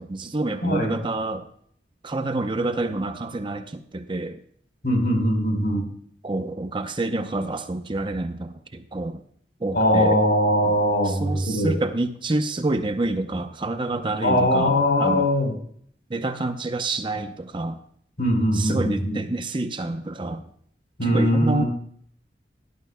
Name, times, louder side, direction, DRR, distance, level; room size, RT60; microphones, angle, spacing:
voice 1, 0.0-1.5 2.0-4.4 6.2-9.2 9.6-10.2 11.1-15.3 16.1-17.8 18.5-20.4 21.0-21.6, right 2 dB, 30° right, 8 dB, 0.6 m, -28 dB
voice 2, 0.6-1.0 2.9-3.0 4.8-5.8 9.7-11.7 14.2-15.5 18.2-19.2 21.0-21.7, equal, 65° left, 2 dB, 4.1 m, -21 dB
17.5 x 11.5 x 2.2 m, 0.63 s
head